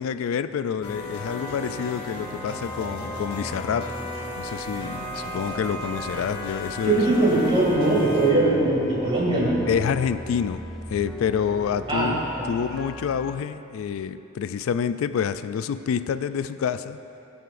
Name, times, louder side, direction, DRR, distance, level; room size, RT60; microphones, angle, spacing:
voice 1, 0.0-3.9 4.4-7.0 9.7-10.6 10.9-12.2 12.5-17.0, left 7 dB, 85° left, 12 dB, 0.3 m, -27 dB
sound 1, 0.8-8.3, left 1 dB, 25° left, 1.4 m, -35 dB
sound 2, 1.2-13.3, equal, ahead, 0.7 m, -40 dB
voice 2, 6.8-9.6 11.9-12.1, right 2 dB, 25° right, -6 dB, 2.3 m, -21 dB
17.5 x 7.8 x 2.5 m, 2.9 s
head